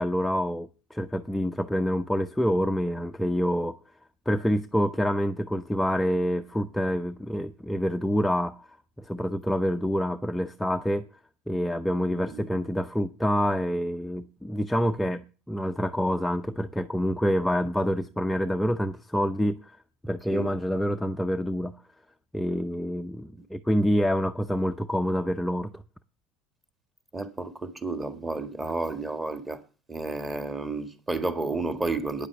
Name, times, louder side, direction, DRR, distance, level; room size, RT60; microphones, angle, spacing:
voice 1, 0.0-3.8 4.3-8.7 9.0-11.1 11.5-19.8 20.0-21.7 22.3-25.8, equal, 5° left, 0.5 m, -27 dB
voice 2, 27.1-29.6 29.9-32.3, right 3 dB, 15° right, 1.6 m, -31 dB
9.4 x 8.1 x 8.1 m
supercardioid pair, 120°, 0 cm